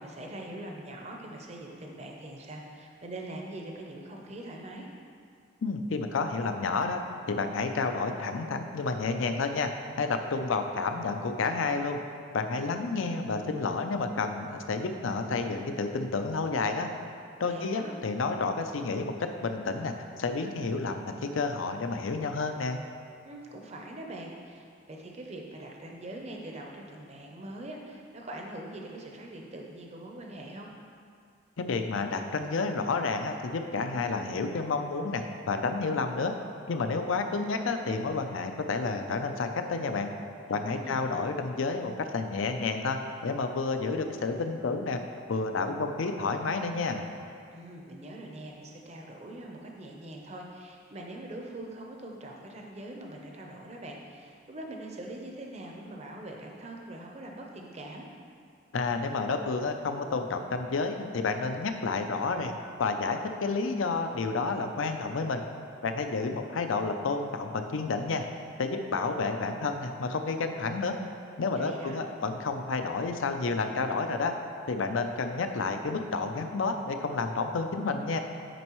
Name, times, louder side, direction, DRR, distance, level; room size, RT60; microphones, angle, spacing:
voice 1, 0.0-4.9 17.4-17.9 23.2-30.7 40.5-41.0 47.5-58.0 71.5-72.0, right 1 dB, 35° right, 1 dB, 0.6 m, -43 dB
voice 2, 5.6-7.0 7.3-9.7 10.0-12.0 12.3-16.9 17.4-22.8 31.6-36.3 36.7-40.1 40.5-45.0 45.3-47.0 58.7-62.5 62.8-65.4 65.8-68.2 68.6-70.9 71.4-74.3 74.7-78.2, left 4 dB, 80° left, 6 dB, 0.5 m, -30 dB
9.1 x 5.3 x 3.1 m, 2.3 s
head